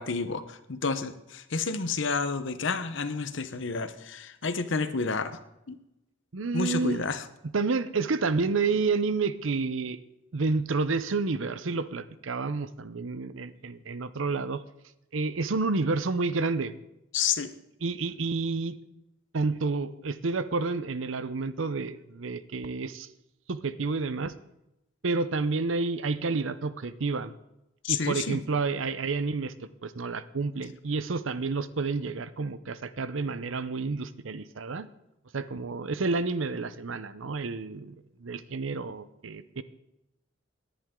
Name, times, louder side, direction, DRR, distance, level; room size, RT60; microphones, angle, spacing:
voice 1, 0.0-5.4 5.7-5.8 6.5-7.2 17.1-17.5 27.8-28.4, left 4 dB, 65° left, 11 dB, 0.9 m, -30 dB
voice 2, 6.3-7.0 7.5-10.0 10.3-14.6 15.1-16.7 17.8-18.8 19.3-23.1 23.5-24.3 25.0-27.3 27.9-29.5 29.8-34.9 35.3-37.9 38.2-39.6, right 4 dB, 70° right, 14 dB, 0.7 m, -29 dB
18.0 x 10.5 x 3.7 m, 0.90 s
head